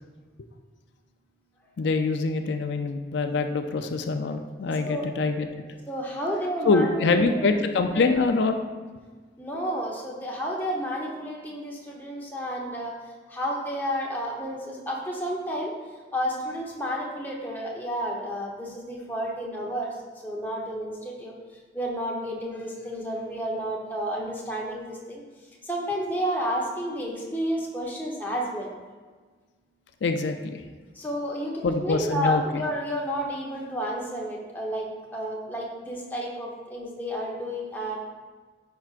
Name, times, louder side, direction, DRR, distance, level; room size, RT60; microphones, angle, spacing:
voice 1, 1.8-5.5 6.7-8.6 30.0-30.6 31.6-32.4, left 3 dB, 80° left, 6 dB, 0.4 m, -24 dB
voice 2, 4.7-5.1 5.9-8.2 9.4-13.0 13.3-15.7 16.1-21.3 21.7-25.2 25.6-28.7 30.9-38.0, equal, 10° left, -3 dB, 0.9 m, -31 dB
10.5 x 4.6 x 2.5 m, 1.4 s
head